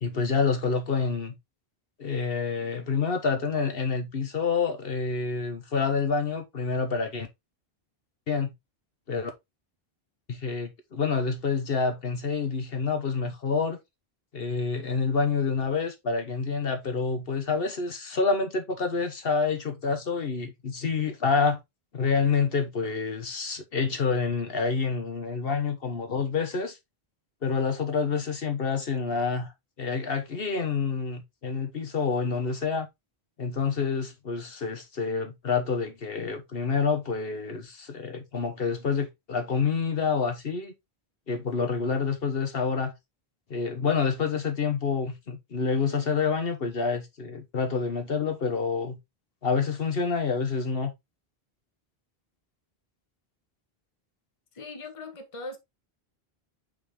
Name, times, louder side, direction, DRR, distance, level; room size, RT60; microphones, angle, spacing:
voice 1, 0.0-1.3 2.0-7.3 8.3-8.5 9.1-9.3 10.3-13.8 14.3-21.6 21.9-26.8 27.4-29.5 29.8-32.9 33.4-40.7 41.3-42.9 43.5-49.0 49.4-50.9, left 5 dB, 65° left, 1.3 m, -28 dB
voice 2, 54.5-55.6, left 2 dB, 30° left, 1.2 m, -39 dB
5.3 x 5.0 x 3.6 m
omnidirectional pair, 1.0 m